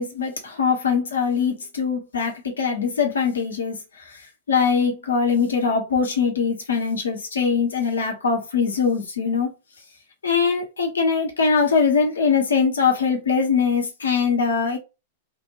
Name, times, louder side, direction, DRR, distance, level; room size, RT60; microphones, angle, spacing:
voice 1, 0.0-9.5 10.2-14.8, left 5 dB, 75° left, 1.3 m, -22 dB
3.6 x 2.6 x 3.0 m
figure-of-eight pair, 100°, 0 cm